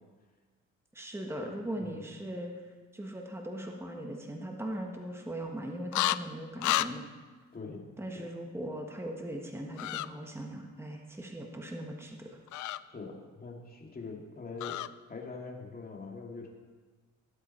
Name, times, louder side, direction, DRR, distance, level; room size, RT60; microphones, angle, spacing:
voice 1, 0.9-2.5 2.9-7.1 8.0-12.4, right 1 dB, 10° right, 1 dB, 1.5 m, -39 dB
voice 2, 1.7-2.1 7.5-7.9 8.1-8.3 12.9-14.8 15.1-16.5, left 4 dB, 30° left, 0 dB, 2.5 m, -43 dB
sound 1, 5.9-6.2 6.6-6.9 9.8-10.1 12.5-12.8 14.6-14.9, left 15 dB, 75° left, 0.5 m, -30 dB
17.0 x 8.2 x 4.4 m, 1.4 s
cardioid pair, 90°, 30 cm